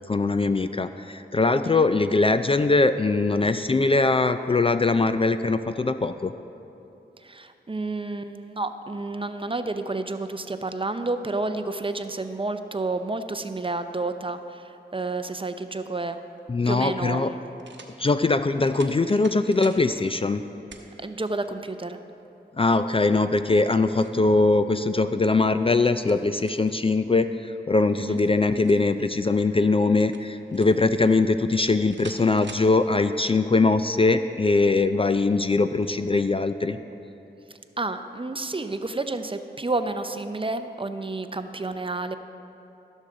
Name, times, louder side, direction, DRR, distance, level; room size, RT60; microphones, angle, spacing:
voice 1, 0.1-6.3 16.5-17.3 18.0-20.4 22.6-36.8, left 3 dB, 30° left, 10 dB, 0.3 m, -22 dB
voice 2, 7.2-16.2 16.7-17.4 21.0-22.0 28.0-28.2 37.8-42.2, right 2 dB, 30° right, 9 dB, 0.6 m, -30 dB
sound 1, 16.4-16.5 17.6-18.0 18.6-19.8 20.7-20.9 21.5-21.6 23.4-24.2 25.6-26.8 27.9-28.9 30.0-30.9 31.9-32.7, right 4 dB, 70° right, 0.9 m, -46 dB
15.0 x 6.4 x 3.9 m, 2.9 s
cardioid pair, 40°, 19 cm